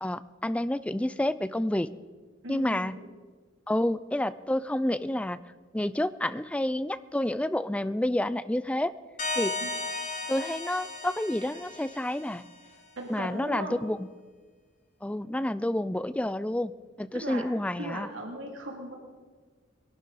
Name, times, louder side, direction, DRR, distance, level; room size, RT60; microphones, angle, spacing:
voice 1, 0.0-1.9 2.5-2.9 3.7-5.4 5.7-8.9 9.4-9.5 10.3-12.5 13.1-14.1 15.0-16.7 17.0-18.1, left 1 dB, 5° left, 15 dB, 0.3 m, -29 dB
voice 2, 2.4-3.0 9.6-9.8 13.0-13.7 17.2-17.4 17.8-18.9, right 1 dB, 85° right, 0 dB, 2.7 m, -38 dB
sound 1, 9.2-12.6, left 3 dB, 40° left, 1.6 m, -35 dB
22.0 x 12.0 x 4.1 m, 1.5 s
head